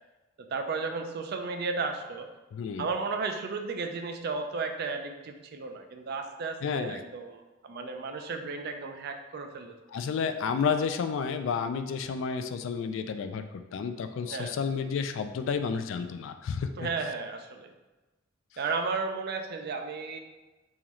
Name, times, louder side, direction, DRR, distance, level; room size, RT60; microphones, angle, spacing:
voice 1, 0.5-2.3 2.8-9.8 14.3-14.6 16.8-17.7 18.6-20.2, right 4 dB, 55° right, 5 dB, 0.4 m, -34 dB
voice 2, 2.5-2.9 6.6-7.0 9.9-16.9, left 6 dB, 70° left, 8 dB, 0.3 m, -31 dB
3.7 x 3.0 x 2.9 m, 1.1 s
head